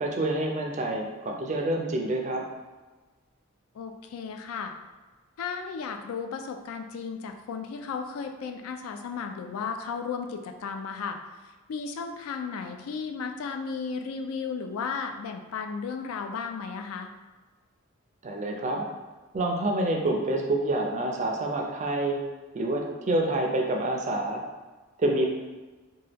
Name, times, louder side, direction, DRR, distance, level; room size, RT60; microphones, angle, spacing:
voice 1, 0.0-2.4 18.2-18.9 19.3-22.2 22.5-24.4 25.0-25.3, right 1 dB, 35° right, 1 dB, 0.4 m, -27 dB
voice 2, 3.7-4.7 5.4-17.1, left 5 dB, 75° left, 6 dB, 0.3 m, -34 dB
2.9 x 2.2 x 3.3 m, 1.3 s
head